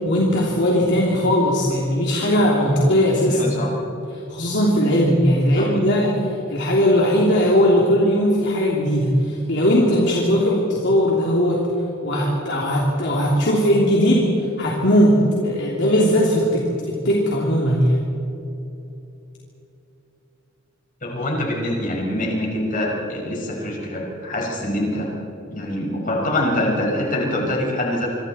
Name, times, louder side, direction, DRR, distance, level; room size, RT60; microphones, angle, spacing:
voice 1, 0.0-3.5 4.3-6.2 6.5-11.6 12.0-14.3 14.6-18.0, equal, 60° left, -4 dB, 3.1 m, -18 dB
voice 2, 3.3-3.7 5.5-5.7 21.0-25.1 25.5-28.1, left 1 dB, 40° left, -1 dB, 5.6 m, -24 dB
26.5 x 25.0 x 4.4 m, 2.9 s
head